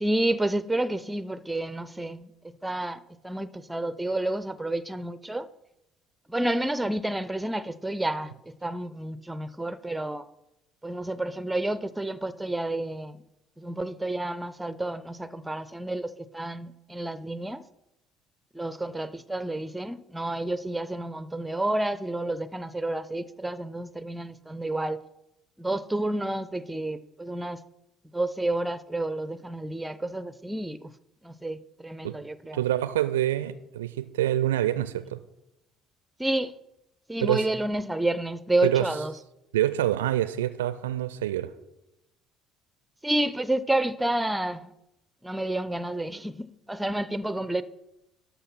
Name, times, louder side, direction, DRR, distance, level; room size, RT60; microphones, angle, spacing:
voice 1, 0.0-5.5 6.3-10.3 10.8-13.2 13.6-17.7 18.5-25.0 25.6-27.6 28.1-30.9 31.2-32.6 36.2-36.5 37.1-39.1 43.0-44.7 45.2-47.6, right 1 dB, 10° right, 0.6 m, -30 dB
voice 2, 32.5-35.2 37.2-37.5 38.6-38.9 39.5-41.5, right 13 dB, 70° right, 0.4 m, -26 dB
12.0 x 5.8 x 5.9 m
figure-of-eight pair, 55°, 0 cm